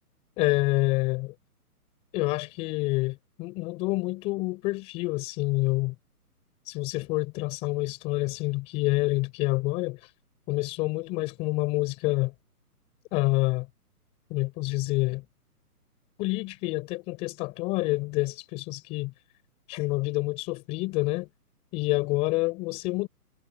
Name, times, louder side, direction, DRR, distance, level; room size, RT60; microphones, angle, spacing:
voice 1, 0.4-1.3 2.1-5.9 6.7-10.0 10.5-12.3 13.1-13.7 14.3-15.2 16.2-19.1 19.7-21.3 21.7-23.1, left 22 dB, 15° left, 5.0 m, -27 dB
hypercardioid pair, 175°, 46 cm